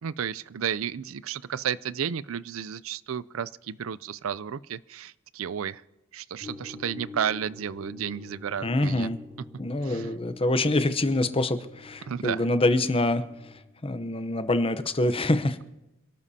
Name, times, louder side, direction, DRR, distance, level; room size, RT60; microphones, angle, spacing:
voice 1, 0.0-5.8 6.1-9.1 9.8-10.1 12.1-12.5, right 8 dB, 70° right, 18 dB, 0.4 m, -32 dB
sound 1, 6.4-13.6, left 3 dB, 25° right, 3.1 m, -46 dB
voice 2, 8.6-9.2 9.6-13.2 13.8-15.6, left 2 dB, 25° left, 11 dB, 0.8 m, -25 dB
27.5 x 12.5 x 2.8 m, 0.96 s
head